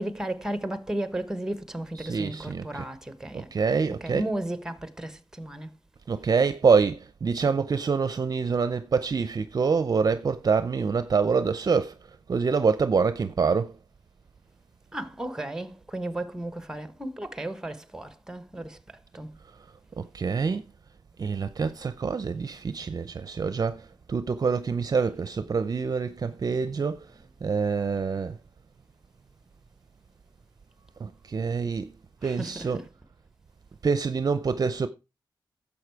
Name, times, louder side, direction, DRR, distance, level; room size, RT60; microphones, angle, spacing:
voice 1, 0.0-5.8 14.9-18.8 19.1-19.4 32.2-32.9, right 1 dB, 5° right, 1.2 m, -34 dB
voice 2, 1.9-2.9 3.3-4.3 6.1-13.8 20.0-20.6 21.2-28.4 31.0-31.9 32.2-32.9 33.8-34.9, right 5 dB, 50° right, 0.6 m, -26 dB
11.0 x 7.2 x 4.7 m
wide cardioid pair, 100°, 8 cm